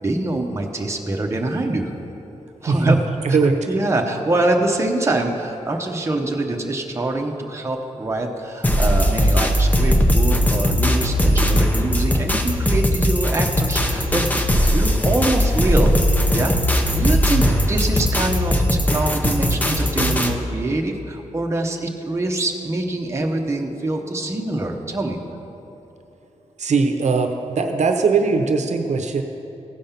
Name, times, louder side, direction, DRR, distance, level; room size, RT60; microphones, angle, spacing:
voice 1, 0.0-1.9 2.6-3.0 3.3-14.4 14.7-15.9 16.3-25.2, right 2 dB, 20° right, 1 dB, 0.8 m, -24 dB
voice 2, 2.7-3.0 3.2-3.6 17.4-17.7 26.6-29.2, right 4 dB, 70° right, 5 dB, 0.7 m, -20 dB
sound 1, 8.6-20.3, equal, 15° left, 0.6 m, -19 dB
15.5 x 5.3 x 5.7 m, 2.9 s
wide cardioid pair, 155°, 12 cm